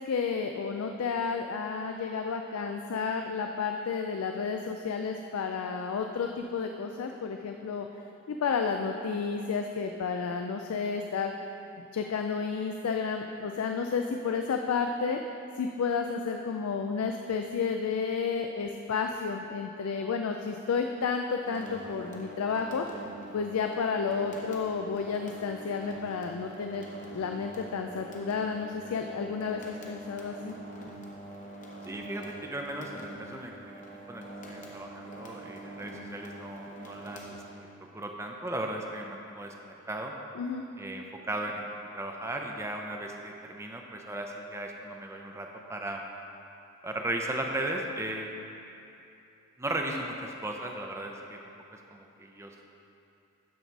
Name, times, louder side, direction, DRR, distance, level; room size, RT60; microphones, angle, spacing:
voice 1, 0.1-7.9 8.3-11.3 11.9-15.2 15.6-22.9 23.3-30.6 40.3-40.6, left 5 dB, 90° left, 4 dB, 0.4 m, -31 dB
sound 1, 21.4-37.9, right 1 dB, 35° left, 0.8 m, -45 dB
voice 2, 31.8-37.4 37.9-40.1 40.8-46.0 46.8-48.3 49.6-51.4 51.7-52.6, right 1 dB, 15° right, 2 dB, 0.5 m, -36 dB
12.0 x 4.0 x 4.6 m, 2.8 s
head